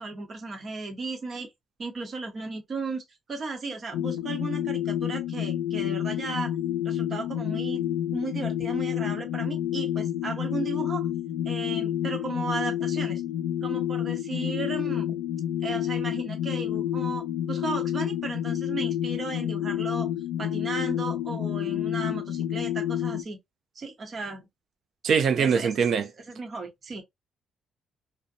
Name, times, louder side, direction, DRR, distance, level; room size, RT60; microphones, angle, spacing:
voice 1, 0.0-1.5 1.8-3.0 3.3-6.6 6.8-7.8 8.1-11.1 11.4-13.2 13.6-15.1 15.6-20.1 20.4-23.4 23.7-24.5 25.4-25.7 26.3-27.0, right 3 dB, 45° right, 0.9 m, -35 dB
sound 1, 3.9-23.2, left 11 dB, 90° left, 0.4 m, -29 dB
voice 2, 25.0-26.1, right 6 dB, 60° right, 0.4 m, -22 dB
2.5 x 2.1 x 2.5 m
cardioid pair, 90°, 0 cm